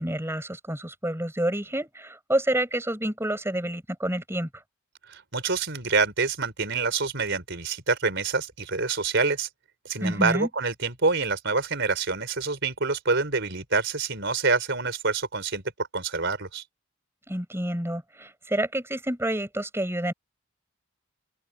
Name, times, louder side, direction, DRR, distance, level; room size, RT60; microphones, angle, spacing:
voice 1, 0.0-4.5 10.0-10.5 17.3-20.1, right 1 dB, 10° right, 6.3 m, -28 dB
voice 2, 5.1-9.5 9.8-15.6 15.9-16.6, right 4 dB, 55° right, 4.6 m, -26 dB
open air
head